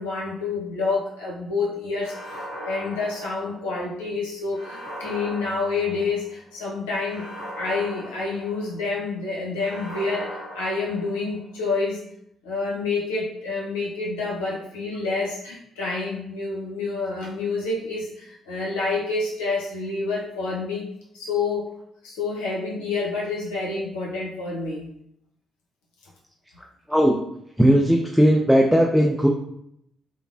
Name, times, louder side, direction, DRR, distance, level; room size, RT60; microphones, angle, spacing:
voice 1, 0.0-2.1 2.6-7.3 7.6-12.0 12.4-20.8 21.1-21.7 22.0-24.9, left 3 dB, 80° left, -5 dB, 0.6 m, -28 dB
sound 1, 2.0-3.9 4.5-6.3 7.0-8.9 9.6-11.4, equal, 75° right, 0.7 m, -39 dB
voice 2, 27.6-29.3, equal, ahead, 1 dB, 0.3 m, -17 dB
3.1 x 2.0 x 2.4 m, 0.74 s
figure-of-eight pair, 40°, 0 cm